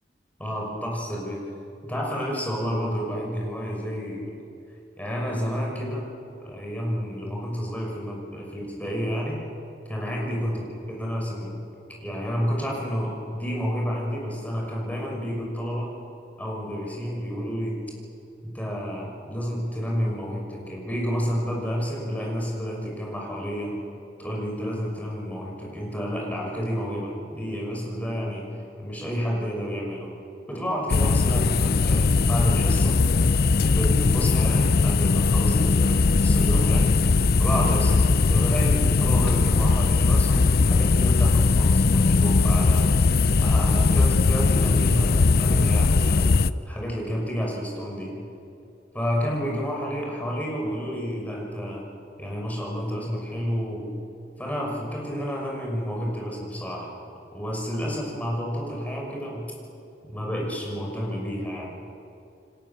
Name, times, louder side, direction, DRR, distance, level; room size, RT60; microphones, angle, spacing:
voice 1, 0.4-1.4 1.8-4.3 5.0-6.1 6.4-9.4 9.9-10.6 10.9-11.5 12.0-15.9 16.4-17.8 18.4-23.7 24.2-28.5 28.8-30.1 30.5-33.0 33.6-36.9 37.4-38.0 38.3-42.9 43.4-46.3 46.6-48.1 48.9-51.8 52.2-53.9 54.4-56.9 57.3-59.5 60.1-61.6, equal, 10° left, -2 dB, 6.0 m, -30 dB
sound 1, 30.9-46.5, left 3 dB, 60° left, 0.6 m, -20 dB
28.5 x 24.0 x 7.3 m, 2.7 s
head